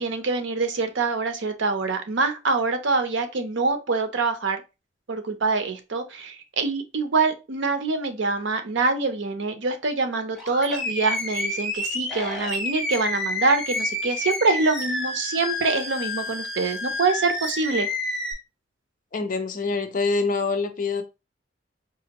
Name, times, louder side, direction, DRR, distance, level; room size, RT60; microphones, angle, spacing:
voice 1, 0.0-4.6 5.1-17.9, right 3 dB, 80° right, 0.6 m, -25 dB
Animal, 10.3-18.3, left 1 dB, ahead, 0.8 m, -29 dB
voice 2, 19.1-21.0, left 4 dB, 45° left, 0.5 m, -25 dB
4.1 x 2.5 x 2.8 m
head